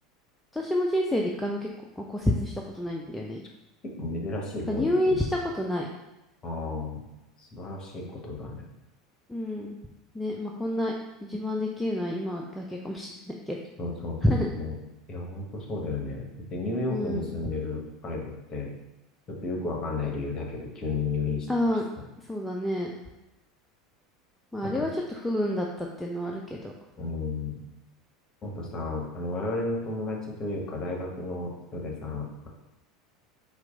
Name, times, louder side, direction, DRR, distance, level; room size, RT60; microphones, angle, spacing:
voice 1, 0.5-1.7 2.0-3.4 4.7-5.9 9.3-9.7 10.1-10.9 11.2-13.6 14.2-14.5 16.9-17.3 21.5-21.8 22.3-22.9 24.5-26.7, left 1 dB, 5° left, -1 dB, 0.4 m, -28 dB
voice 2, 4.0-5.2 6.4-7.0 7.4-8.6 13.8-14.7 15.1-18.7 19.3-21.5 24.6-24.9 27.0-27.6 28.4-32.5, left 3 dB, 25° left, -1 dB, 0.9 m, -33 dB
4.4 x 2.2 x 3.8 m, 0.95 s
figure-of-eight pair, 75°, 3 cm